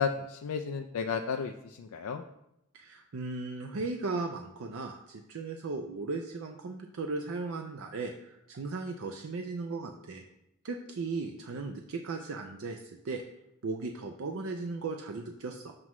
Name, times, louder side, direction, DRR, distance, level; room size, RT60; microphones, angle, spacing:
voice 1, 0.0-2.2, left 6 dB, 90° left, 3 dB, 0.4 m, -32 dB
voice 2, 2.7-10.2 10.6-13.2 13.6-15.7, right 3 dB, 75° right, 4 dB, 0.5 m, -37 dB
7.5 x 3.1 x 6.0 m, 0.83 s
head